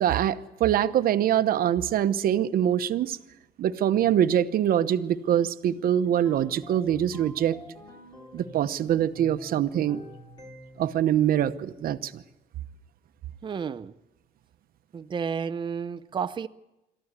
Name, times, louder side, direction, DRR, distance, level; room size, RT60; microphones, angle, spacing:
voice 1, 0.0-3.2 3.6-7.6 8.3-10.0 10.8-12.2, right 10 dB, 60° right, 1.0 m, -24 dB
sound 1, 6.1-8.8 9.1-11.0, left 1 dB, 25° left, 3.9 m, -46 dB
voice 2, 13.4-13.9 14.9-16.5, right 6 dB, 30° right, 0.6 m, -31 dB
23.0 x 14.0 x 9.5 m
cardioid pair, 110°, 17 cm